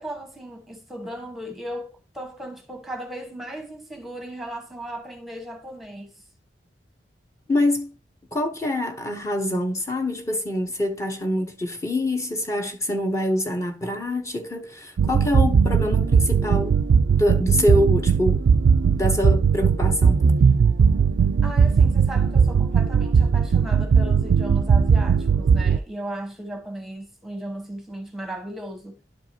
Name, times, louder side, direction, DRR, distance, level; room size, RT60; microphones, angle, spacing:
voice 1, 0.0-6.2 21.4-29.0, right 1 dB, ahead, 1.2 m, -36 dB
voice 2, 7.5-7.9 8.3-16.8 17.2-18.4 19.0-20.2, left 1 dB, 15° left, 0.9 m, -25 dB
sound 1, 15.0-25.8, right 6 dB, 70° right, 0.3 m, -18 dB
11.5 x 4.8 x 2.8 m
head